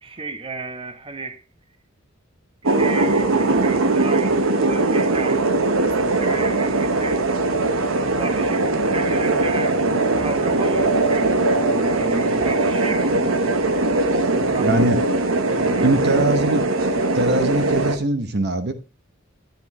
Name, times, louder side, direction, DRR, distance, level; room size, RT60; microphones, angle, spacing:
voice 1, 0.0-1.4 2.6-5.5 5.9-7.4 8.0-9.8 10.2-13.7 14.3-14.9 15.5-16.2, right 2 dB, 25° right, 1.0 m, -33 dB
sound 1, 2.7-18.0, right 2 dB, 80° right, 1.1 m, -20 dB
voice 2, 14.6-15.0 15.8-16.6 17.1-18.7, right 2 dB, 55° right, 1.0 m, -21 dB
10.5 x 10.0 x 3.1 m
head